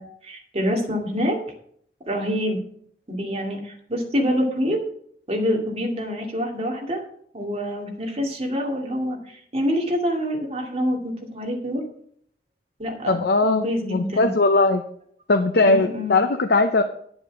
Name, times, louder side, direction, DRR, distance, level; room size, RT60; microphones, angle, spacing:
voice 1, 0.0-1.4 2.1-2.6 3.1-4.8 5.3-7.0 7.3-11.8 12.8-14.3 15.6-16.2, equal, 35° right, 0 dB, 2.3 m, -26 dB
voice 2, 13.1-14.8 15.3-16.8, left 3 dB, 65° left, 7 dB, 0.7 m, -19 dB
10.5 x 7.2 x 6.0 m, 0.65 s
head